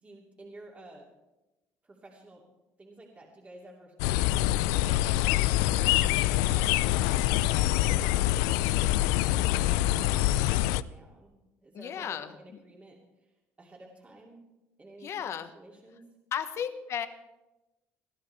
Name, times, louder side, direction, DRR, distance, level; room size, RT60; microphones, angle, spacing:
voice 1, 0.0-1.1 1.8-2.4 2.8-8.9 9.3-11.3 11.6-14.4 14.8-15.3 15.5-16.0, right 2 dB, 25° right, -1 dB, 2.5 m, -52 dB
sound 1, 4.0-10.8, left 15 dB, 90° left, 0.4 m, -25 dB
voice 2, 11.7-12.4 15.0-15.5 16.3-17.1, left 8 dB, 50° left, 9 dB, 1.2 m, -34 dB
20.5 x 13.0 x 3.3 m, 1.0 s
cardioid pair, 105°, 6 cm